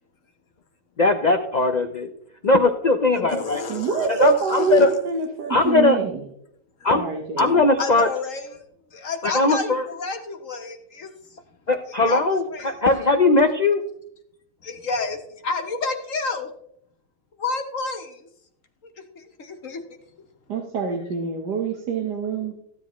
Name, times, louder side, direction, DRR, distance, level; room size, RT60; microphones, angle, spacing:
voice 1, 1.0-2.1 2.4-3.6 4.1-4.9 5.5-6.0 6.8-7.0 7.4-8.1 9.2-9.8 11.7-13.8, left 3 dB, 75° left, 6 dB, 0.3 m, -19 dB
voice 2, 3.1-4.8 7.8-8.6 8.9-11.4 12.1-12.2 12.5-12.7 14.6-15.2 15.4-16.5 17.4-18.3 19.0-19.8, left 4 dB, 50° left, 6 dB, 1.4 m, -30 dB
voice 3, 3.7-6.3 6.9-7.7 20.5-22.5, right 5 dB, 75° right, 2 dB, 1.8 m, -25 dB
15.0 x 10.0 x 3.1 m, 0.73 s
omnidirectional pair, 1.8 m